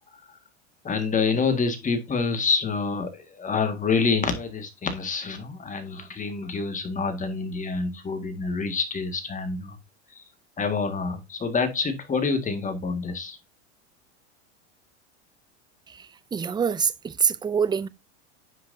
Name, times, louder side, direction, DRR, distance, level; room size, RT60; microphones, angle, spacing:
voice 1, 0.8-9.8 10.1-10.2 10.6-13.4, left 4 dB, 20° left, 1.9 m, -27 dB
voice 2, 16.3-17.9, right 6 dB, 15° right, 0.5 m, -24 dB
9.6 x 5.9 x 2.7 m
hypercardioid pair, 105°, 34 cm